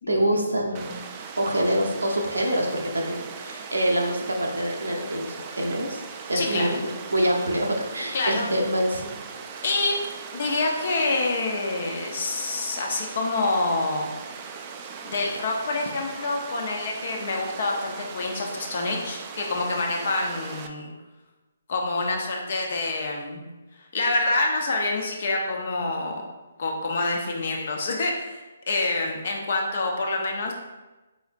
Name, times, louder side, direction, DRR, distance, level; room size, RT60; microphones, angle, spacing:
voice 1, 0.1-1.0 1.4-6.0 6.3-6.7 7.1-9.1, right 1 dB, 90° right, 0 dB, 0.8 m, -25 dB
Water, 0.7-20.7, right 6 dB, 25° right, 0.3 m, -39 dB
voice 2, 6.3-6.8 8.1-8.5 9.6-9.9 10.3-14.1 15.0-20.9 21.7-23.4 23.9-26.3 26.6-30.5, left 2 dB, 55° left, 1 dB, 0.8 m, -27 dB
4.1 x 4.1 x 2.5 m, 1.1 s
figure-of-eight pair, 140°, 0 cm